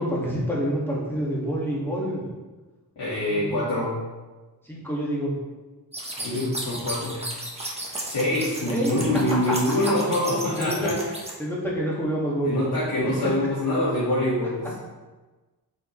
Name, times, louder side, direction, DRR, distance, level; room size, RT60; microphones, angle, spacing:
voice 1, 0.0-2.2 3.3-3.7 4.6-5.3 6.2-6.4 8.7-9.2 9.5-9.6 10.6-11.0 11.4-12.8 13.0-13.1, equal, 5° left, -6 dB, 2.0 m, -28 dB
voice 2, 3.0-3.9 6.2-7.2 8.0-11.2 12.4-14.8, left 1 dB, 80° left, -11 dB, 2.0 m, -25 dB
sound 1, 5.9-11.3, right 1 dB, 15° right, 1.2 m, -34 dB
8.3 x 4.9 x 3.3 m, 1.2 s
wide cardioid pair, 145°, 40 cm